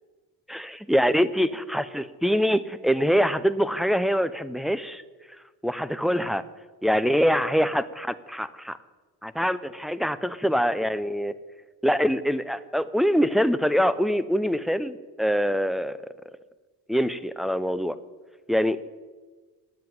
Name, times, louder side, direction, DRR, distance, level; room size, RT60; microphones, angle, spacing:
voice 1, 0.5-5.0 5.6-6.4 6.8-8.8 9.2-11.3 11.8-16.0 16.9-18.0 18.5-18.9, equal, ahead, 13 dB, 0.4 m, -24 dB
10.5 x 7.7 x 9.3 m, 1.4 s
cardioid pair, 115°, 38 cm